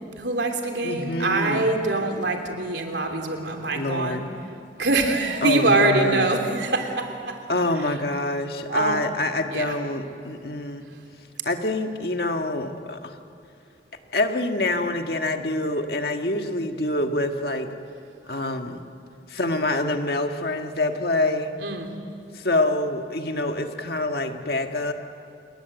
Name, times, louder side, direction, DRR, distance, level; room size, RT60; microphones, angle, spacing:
voice 1, 0.2-4.2 4.8-7.4 7.8-7.9 8.7-9.0 9.5-9.8 21.6-21.9, right 2 dB, 75° right, 4 dB, 3.2 m, -24 dB
voice 2, 0.8-1.7 3.7-4.3 5.4-6.3 7.5-10.9 11.5-13.2 14.1-17.7 18.3-18.9 19.3-21.5 22.3-24.9, left 2 dB, 55° left, 5 dB, 1.7 m, -26 dB
28.5 x 21.0 x 8.2 m, 2.5 s
head